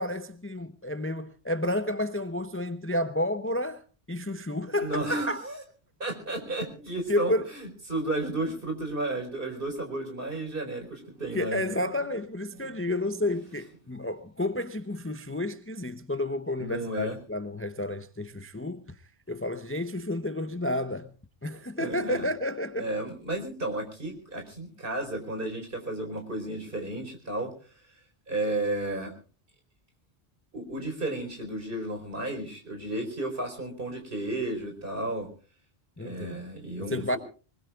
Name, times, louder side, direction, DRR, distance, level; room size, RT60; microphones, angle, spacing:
voice 1, 0.0-3.8 4.1-5.5 7.1-7.5 11.3-19.0 19.3-21.1 21.4-22.9 36.0-36.4 36.8-37.2, left 1 dB, 15° left, 0.6 m, -31 dB
voice 2, 4.8-5.6 6.0-11.8 12.7-12.8 16.6-17.2 21.8-22.3 22.8-27.5 28.3-29.1 30.5-35.3 36.0-37.2, right 2 dB, 55° right, 4.8 m, -33 dB
24.5 x 20.5 x 2.4 m
omnidirectional pair, 1.1 m